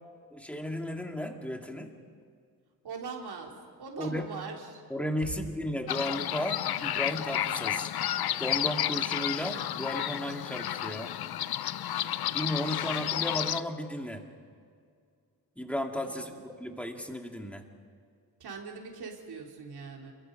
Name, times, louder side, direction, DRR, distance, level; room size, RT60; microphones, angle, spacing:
voice 1, 0.3-1.9 4.0-4.3 4.9-7.9 8.4-11.1 12.3-14.2 15.6-17.6, equal, 5° left, 3 dB, 2.0 m, -34 dB
voice 2, 2.8-4.8 5.2-5.4 16.0-16.4 18.4-20.1, right 5 dB, 75° right, 0 dB, 3.6 m, -41 dB
sound 1, 5.9-13.6, left 12 dB, 70° left, 0.7 m, -31 dB
28.0 x 22.0 x 5.4 m, 2.2 s
wide cardioid pair, 115°, 39 cm